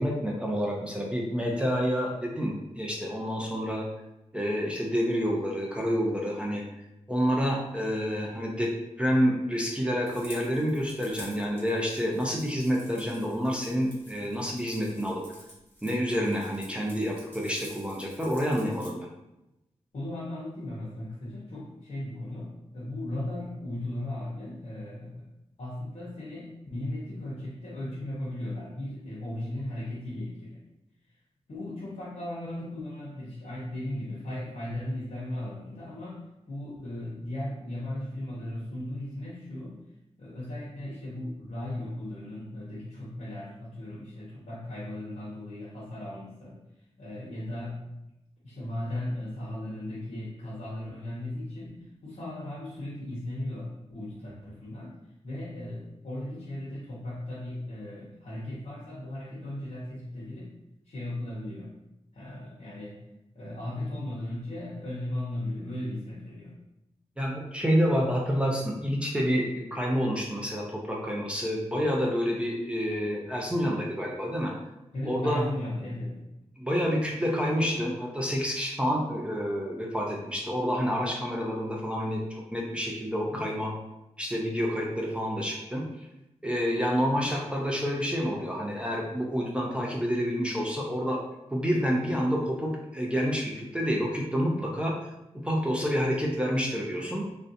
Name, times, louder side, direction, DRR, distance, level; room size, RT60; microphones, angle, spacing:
voice 1, 0.0-3.9 4.3-6.6 7.1-8.7 9.0-15.2 15.8-19.1 67.2-74.5 75.0-75.4 76.6-82.2 82.5-83.7 84.2-85.9 86.4-91.2 91.5-94.9 95.3-97.2, equal, 10° right, -2 dB, 0.4 m, -28 dB
sound 1, 10.1-18.9, equal, 15° left, 1.1 m, -50 dB
voice 2, 19.9-25.3 25.6-30.6 31.5-39.8 40.2-46.6 47.0-47.8 48.4-54.9 55.2-60.5 60.9-61.7 62.1-63.0 63.3-66.6 74.9-76.2, left 1 dB, 70° left, -8 dB, 0.8 m, -37 dB
3.2 x 2.5 x 2.6 m, 0.90 s
wide cardioid pair, 105°, 12 cm